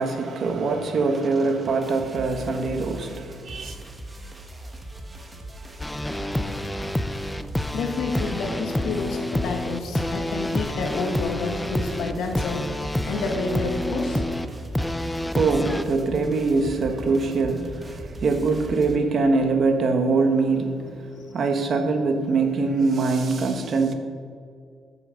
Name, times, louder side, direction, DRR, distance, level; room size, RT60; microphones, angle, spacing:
voice 1, 0.0-3.7 14.9-23.9, right 3 dB, 55° right, 1.3 m, -23 dB
sound 1, 1.1-19.0, right 2 dB, 20° right, 1.3 m, -39 dB
sound 2, 5.8-15.8, left 1 dB, 10° left, 0.5 m, -28 dB
voice 2, 7.7-14.2, left 4 dB, 80° left, 1.5 m, -29 dB
12.5 x 7.0 x 5.2 m
cardioid pair, 90°, 0 cm